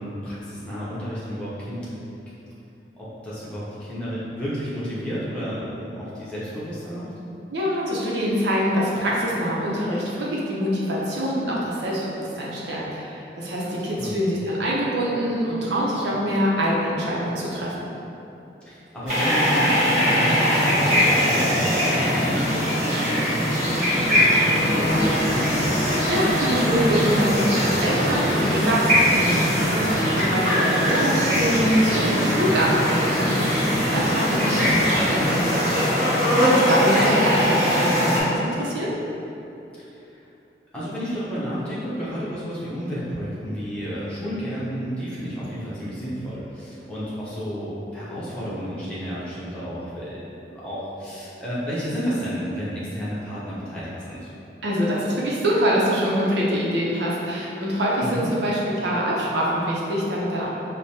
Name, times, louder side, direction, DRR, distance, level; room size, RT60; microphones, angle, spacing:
voice 1, 0.0-2.0 3.0-7.1 13.6-14.1 18.7-25.8 34.3-34.8 39.8-40.2 40.7-54.3 58.0-58.3, equal, 5° left, -10 dB, 0.7 m, -31 dB
voice 2, 7.5-17.8 26.1-38.9 54.6-60.5, equal, 85° right, -5 dB, 0.7 m, -25 dB
sound 1, 19.1-38.2, equal, 40° right, 1.2 m, -21 dB
sound 2, 21.1-37.7, equal, 65° right, 0.9 m, -32 dB
sound 3, 24.4-35.6, left 1 dB, 60° left, 0.4 m, -30 dB
4.8 x 2.1 x 2.8 m, 2.9 s
head